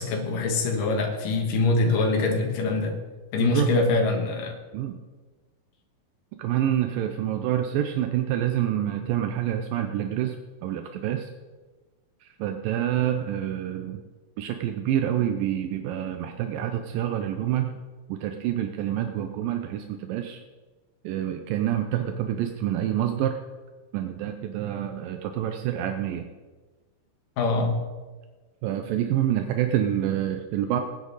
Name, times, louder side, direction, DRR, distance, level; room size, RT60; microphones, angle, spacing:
voice 1, 0.0-3.0 3.3-4.5 27.4-27.8, left 3 dB, 75° left, 3 dB, 3.2 m, -24 dB
voice 2, 6.4-10.4 10.6-11.3 12.2-14.0 14.4-17.8 18.1-20.4 21.0-23.4 23.9-26.3 28.6-30.8, right 11 dB, 80° right, 6 dB, 2.4 m, -27 dB
19.0 x 10.0 x 4.1 m, 1.3 s
omnidirectional pair, 4.0 m